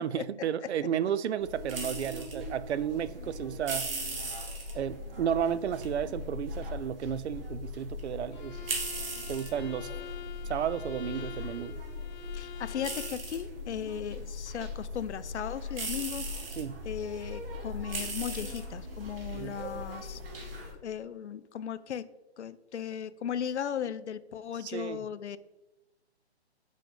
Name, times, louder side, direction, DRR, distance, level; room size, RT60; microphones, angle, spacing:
voice 1, 0.0-3.9 4.7-8.6 9.3-9.9 10.5-11.8 16.6-16.8 19.3-19.6 24.6-25.1, right 9 dB, 75° right, 16 dB, 0.5 m, -33 dB
sound 1, 1.4-20.7, equal, 55° right, 1.6 m, -39 dB
Bowed string instrument, 8.3-13.3, left 9 dB, 45° left, 0.7 m, -46 dB
voice 2, 12.3-16.3 16.8-20.2 20.8-22.1 22.4-25.4, left 8 dB, 85° left, 15 dB, 0.5 m, -37 dB
5.4 x 5.2 x 3.8 m, 1.0 s
hypercardioid pair, 160°, 34 cm